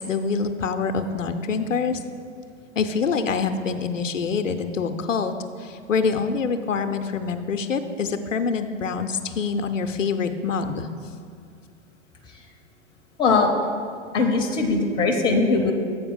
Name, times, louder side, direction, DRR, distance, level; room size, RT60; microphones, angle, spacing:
voice 1, 0.0-2.0 2.8-5.3 5.6-10.9, left 5 dB, 80° left, 8 dB, 0.6 m, -25 dB
voice 2, 13.2-13.5 14.1-15.7, left 3 dB, 10° left, 3 dB, 0.5 m, -20 dB
7.9 x 4.5 x 5.3 m, 2.3 s
figure-of-eight pair, 105°, 38 cm